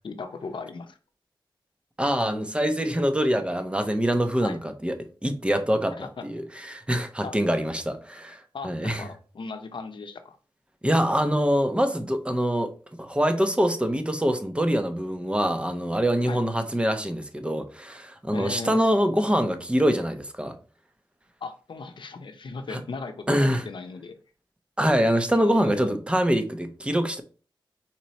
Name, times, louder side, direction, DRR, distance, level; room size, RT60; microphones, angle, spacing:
voice 1, 0.0-1.0 4.4-4.6 6.0-6.2 7.2-7.4 8.5-10.4 16.3-16.4 18.3-18.8 21.4-24.1 25.3-25.9, left 4 dB, 65° left, 0.7 m, -37 dB
voice 2, 2.0-5.0 5.2-9.1 10.8-20.6 22.7-22.8 23.3-23.7 24.8-27.2, equal, 10° right, 0.8 m, -24 dB
4.4 x 3.0 x 4.1 m
wide cardioid pair, 75°, 9 cm